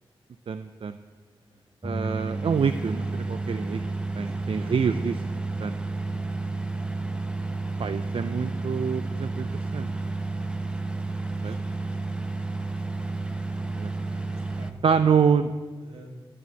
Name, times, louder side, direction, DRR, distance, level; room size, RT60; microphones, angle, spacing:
voice 1, 0.5-1.0 1.8-3.8 4.2-5.8 7.8-9.5 9.7-9.9 11.4-11.6 13.8-13.9 14.8-15.5, right 6 dB, 70° right, 10 dB, 0.5 m, -26 dB
voice 2, 1.2-1.6 4.2-4.3 6.0-6.2 11.4-11.6 14.1-15.0 15.8-16.1, right 1 dB, 85° right, 0 dB, 2.6 m, -52 dB
sound 1, 1.8-14.7, right 3 dB, 10° right, 1.1 m, -31 dB
12.0 x 10.0 x 7.9 m, 1.4 s
cardioid pair, 55°, 10 cm